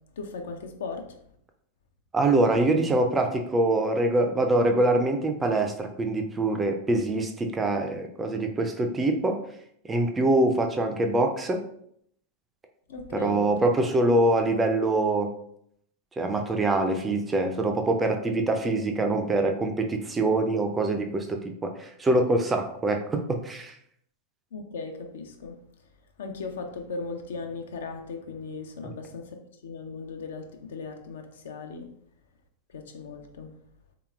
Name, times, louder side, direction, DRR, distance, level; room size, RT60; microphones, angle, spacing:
voice 1, 0.2-1.2 12.9-13.5 24.5-25.5 26.2-29.4 29.6-31.9 32.7-33.5, left 4 dB, 60° left, 5 dB, 0.4 m, -37 dB
voice 2, 2.1-9.4 9.9-11.6 13.1-15.3 16.2-23.7 28.8-28.9, right 2 dB, 15° right, 4 dB, 0.4 m, -24 dB
3.3 x 2.9 x 2.3 m, 0.69 s
figure-of-eight pair, 90°, 0 cm